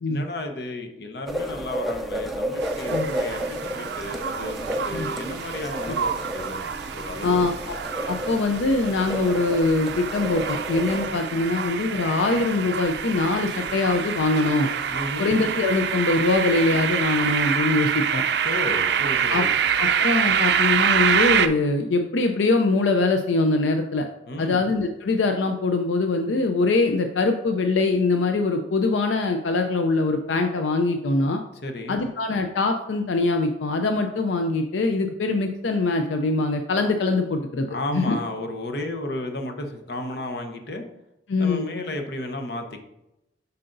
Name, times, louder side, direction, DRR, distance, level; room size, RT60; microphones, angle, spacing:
voice 1, 0.1-7.4 14.9-15.3 18.4-19.6 24.3-24.6 31.6-32.0 37.7-40.8 41.4-42.8, left 1 dB, 60° left, 4 dB, 0.8 m, -33 dB
sound 1, 1.3-11.1, equal, ahead, 0.4 m, -32 dB
sound 2, 2.6-21.5, right 7 dB, 60° right, 0.4 m, -26 dB
voice 2, 7.2-7.7 8.1-14.7 15.2-18.2 19.3-19.4 19.8-24.1 24.4-31.4 31.9-37.7 37.9-38.2 41.3-41.7, left 3 dB, 80° left, 6 dB, 0.5 m, -23 dB
7.6 x 5.6 x 2.6 m, 0.90 s
head